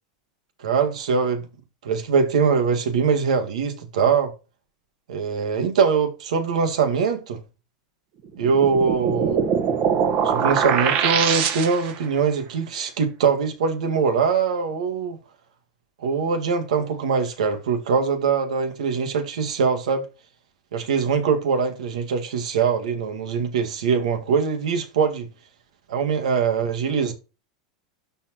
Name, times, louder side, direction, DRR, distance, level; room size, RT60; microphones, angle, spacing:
voice 1, 0.6-1.5 1.8-4.3 5.1-7.4 8.4-9.5 10.2-15.2 16.0-20.1 20.7-25.3 25.9-27.1, right 5 dB, 90° right, 1.8 m, -22 dB
sound 1, 8.4-12.0, right 7 dB, 45° right, 1.6 m, -22 dB
12.5 x 4.3 x 3.0 m
supercardioid pair, 135°, 4 cm